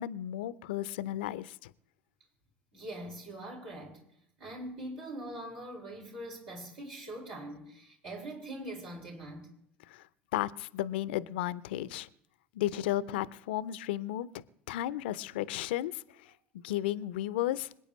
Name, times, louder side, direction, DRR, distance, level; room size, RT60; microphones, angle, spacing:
voice 1, 0.0-1.7 9.9-10.0 10.3-12.1 12.5-14.3 14.7-16.0 16.6-17.7, left 13 dB, 70° left, 0.5 m, -33 dB
voice 2, 2.7-4.0 4.4-9.5, right 1 dB, 70° right, 5.0 m, -42 dB
26.0 x 9.0 x 3.1 m
figure-of-eight pair, 65°, 6 cm